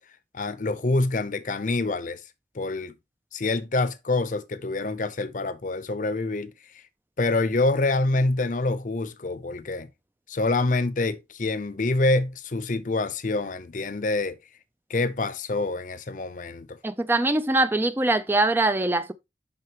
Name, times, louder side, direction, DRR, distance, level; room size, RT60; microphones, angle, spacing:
voice 1, 0.3-2.2 2.5-2.9 3.3-6.5 7.2-9.9 10.3-14.4 14.9-16.8, left 2 dB, 45° left, 0.6 m, -26 dB
voice 2, 16.8-19.1, right 2 dB, 10° right, 0.4 m, -23 dB
7.8 x 5.7 x 2.9 m
head